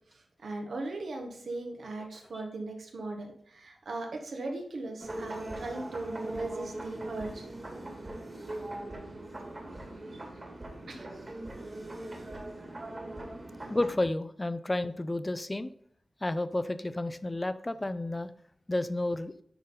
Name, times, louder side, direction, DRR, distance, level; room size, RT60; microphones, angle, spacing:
voice 1, 0.4-7.4 10.9-11.1, right 2 dB, 80° right, 2 dB, 1.5 m, -38 dB
sound 1, 5.0-13.9, right 1 dB, 35° right, 2.0 m, -40 dB
voice 2, 13.7-15.7 16.2-18.3 18.7-19.3, left 2 dB, 25° left, 12 dB, 0.5 m, -31 dB
10.5 x 4.1 x 3.9 m, 0.63 s
cardioid pair, 65°, 0 cm